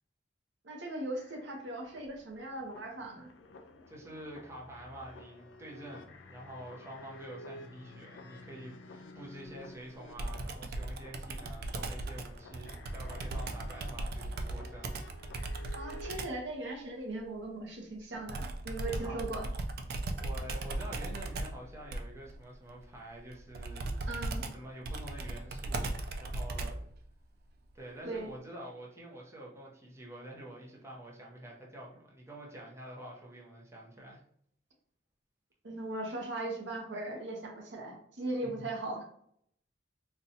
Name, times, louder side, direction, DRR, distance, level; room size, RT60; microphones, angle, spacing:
voice 1, 0.6-3.3 15.8-19.5 24.1-24.5 28.0-28.3 35.6-39.0, right 2 dB, 75° right, 1 dB, 0.8 m, -38 dB
sound 1, 1.2-16.2, left 1 dB, 85° left, 0.4 m, -52 dB
voice 2, 3.9-14.9 18.8-19.3 20.2-24.3 24.5-26.8 27.7-34.2 38.4-38.7, right 1 dB, 15° right, -3 dB, 0.7 m, -47 dB
Computer keyboard, 10.2-16.4 18.3-26.9, right 2 dB, 55° right, 0.4 m, -37 dB
4.0 x 2.3 x 2.7 m, 0.67 s
head